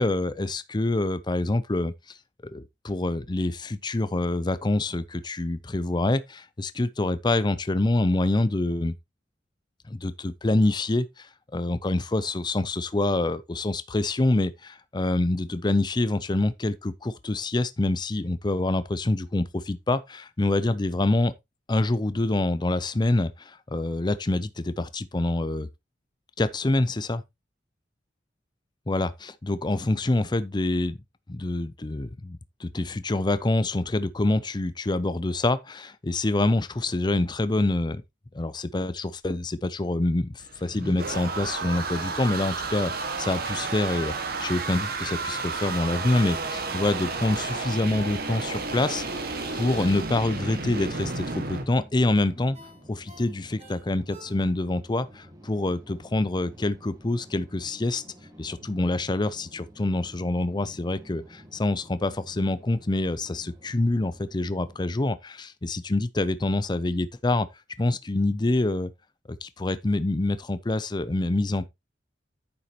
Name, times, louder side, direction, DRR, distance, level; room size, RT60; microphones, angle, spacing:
voice 1, 0.0-2.2 2.5-8.9 9.9-21.3 21.7-25.7 26.4-27.2 28.9-31.0 31.3-38.0 38.3-44.1 44.4-52.6 52.9-58.0 58.4-67.5 67.8-68.9 69.3-71.7, left 2 dB, 25° left, 0.5 m, -26 dB
sound 1, 40.4-51.6, right 3 dB, 55° right, 1.8 m, -32 dB
sound 2, 45.9-65.1, equal, 20° right, 2.2 m, -51 dB
Ringtone, 48.4-50.6 51.0-51.1 52.5-54.8 55.2-55.3, right 1 dB, 40° right, 3.6 m, -50 dB
9.4 x 7.0 x 3.0 m
head